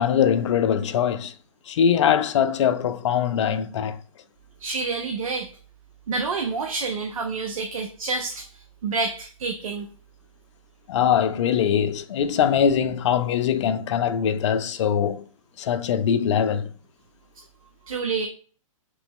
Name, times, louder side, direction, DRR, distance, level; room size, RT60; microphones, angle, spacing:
voice 1, 0.0-1.3 1.7-4.0 10.9-15.2 15.6-16.7, left 8 dB, 60° left, 0.5 m, -22 dB
voice 2, 4.6-5.5 6.1-9.9 17.9-18.3, right 4 dB, 80° right, 0.6 m, -28 dB
3.3 x 3.0 x 3.5 m
hypercardioid pair, 145°, 17 cm